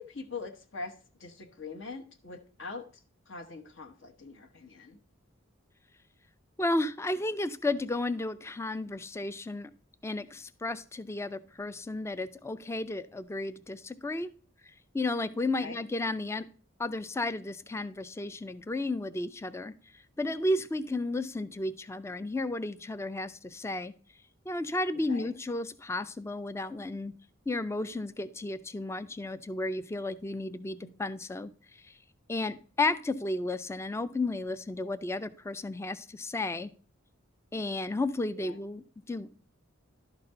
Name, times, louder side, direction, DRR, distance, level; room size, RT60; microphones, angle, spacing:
voice 1, 0.0-5.0 15.6-15.8 25.1-25.3 30.8-30.9 38.4-38.6, left 4 dB, 65° left, 4 dB, 1.0 m, -43 dB
voice 2, 6.6-9.7 10.0-14.3 14.9-16.5 16.8-19.7 20.2-23.9 24.5-27.1 27.5-31.5 32.3-36.7 37.5-39.5, left 2 dB, 15° left, 14 dB, 0.3 m, -33 dB
11.5 x 4.1 x 5.4 m, 0.40 s
head